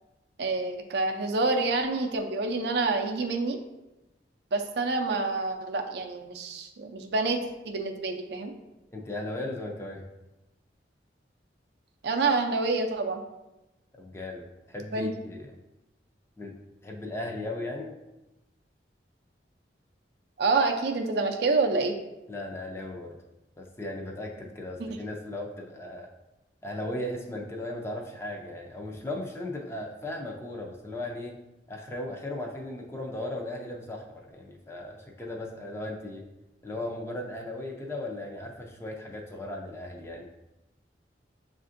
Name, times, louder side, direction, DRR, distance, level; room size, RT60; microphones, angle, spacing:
voice 1, 0.4-3.6 4.5-7.4 7.7-8.5 12.0-13.2 14.9-15.1 20.4-21.9, right 3 dB, 65° right, 4 dB, 0.4 m, -27 dB
voice 2, 8.9-10.0 14.0-15.5 16.4-16.5 16.8-18.0 22.3-23.2 23.6-26.1 26.6-31.4 31.7-36.2 36.6-40.3, left 1 dB, 15° left, 0 dB, 0.4 m, -37 dB
6.2 x 2.5 x 2.5 m, 0.97 s
head